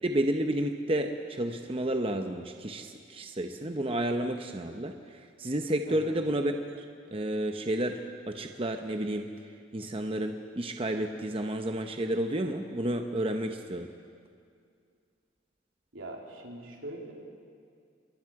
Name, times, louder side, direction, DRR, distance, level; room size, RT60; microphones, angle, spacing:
voice 1, 0.0-6.8 7.1-9.3 9.7-13.9, right 1 dB, 30° right, 5 dB, 0.8 m, -31 dB
voice 2, 15.9-17.1, right 1 dB, 85° right, -1 dB, 3.5 m, -42 dB
27.0 x 22.0 x 4.8 m, 2.3 s
head